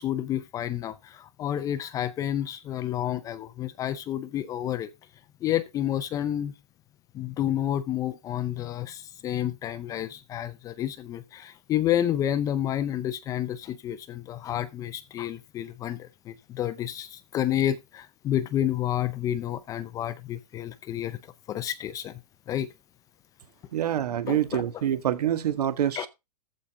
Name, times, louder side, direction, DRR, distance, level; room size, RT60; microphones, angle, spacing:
voice 1, 0.0-4.9 5.4-6.5 7.1-21.2 21.5-22.2 22.5-22.7 24.3-24.8 26.0-26.1, left 11 dB, 15° left, 0.5 m, -30 dB
voice 2, 23.7-26.1, right 10 dB, 70° right, 1.9 m, -26 dB
14.5 x 5.1 x 3.7 m
hypercardioid pair, 150°, 21 cm